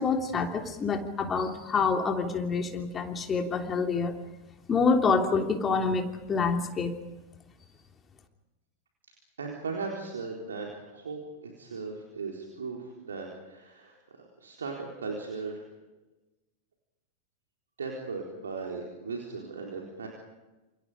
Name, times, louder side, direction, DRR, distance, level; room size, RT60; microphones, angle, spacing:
voice 1, 0.0-4.1 4.7-6.9, left 4 dB, 20° left, 4 dB, 3.2 m, -27 dB
voice 2, 9.4-14.0 14.4-15.7 17.8-20.1, right 4 dB, 70° right, 0 dB, 4.1 m, -37 dB
28.5 x 28.0 x 5.1 m, 1.1 s
figure-of-eight pair, 90°, 0 cm